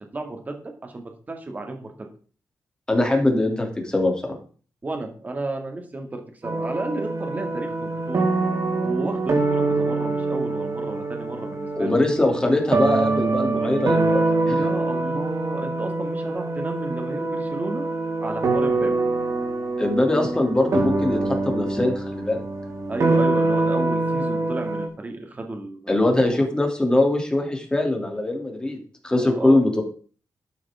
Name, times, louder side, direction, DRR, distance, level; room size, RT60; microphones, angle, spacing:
voice 1, 0.1-0.6 0.8-1.9 4.8-8.3 8.8-12.0 14.4-17.8 18.2-18.9 22.9-26.4 29.1-29.6, right 2 dB, 25° right, 4 dB, 2.4 m, -32 dB
voice 2, 2.9-4.4 11.8-14.2 14.5-14.6 19.8-22.4 25.9-28.8 29.0-29.8, left 2 dB, 15° left, 2 dB, 2.9 m, -22 dB
sound 1, 6.4-24.9, right 3 dB, 55° right, 4.1 m, -24 dB
12.0 x 10.5 x 3.7 m, 0.41 s
wide cardioid pair, 155°, 6 cm